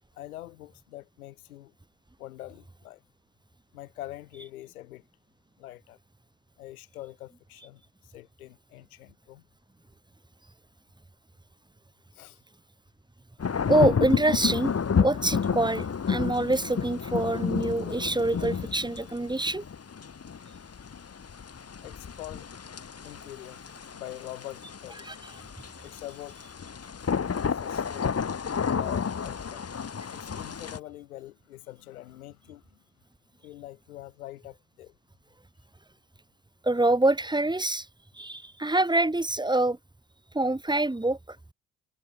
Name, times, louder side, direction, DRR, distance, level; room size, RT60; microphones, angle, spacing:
voice 1, 0.2-1.7 2.2-3.0 3.7-5.0 5.6-6.0 6.6-9.4 12.1-12.4 21.0-21.1 21.8-22.5 23.0-23.6 23.9-25.1 25.4-25.5 25.8-26.4 27.5-28.2 28.7-29.6 30.1-32.8 33.4-34.9, left 15 dB, 80° left, 2.6 m, -44 dB
sound 1, 13.4-30.8, left 6 dB, 35° left, 3.4 m, -31 dB
voice 2, 13.7-14.7 15.0-19.6 25.0-25.1 36.6-37.9 38.1-39.8 40.3-41.4, right 2 dB, 10° right, 3.3 m, -25 dB
figure-of-eight pair, 50°, 43 cm